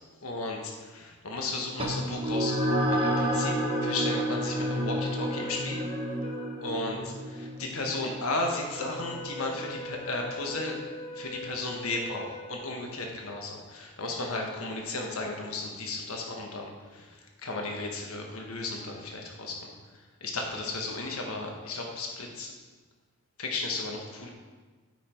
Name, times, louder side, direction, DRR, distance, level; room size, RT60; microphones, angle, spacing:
voice 1, 0.2-3.5 3.8-5.8 6.6-10.8 11.1-19.7 20.2-22.5 23.4-24.3, left 2 dB, 75° left, 1 dB, 1.4 m, -34 dB
sound 1, 1.8-10.6, equal, 25° right, 1.3 m, -31 dB
sound 2, 2.9-13.3, left 1 dB, 25° left, 0.8 m, -41 dB
9.1 x 5.9 x 4.5 m, 1.4 s
head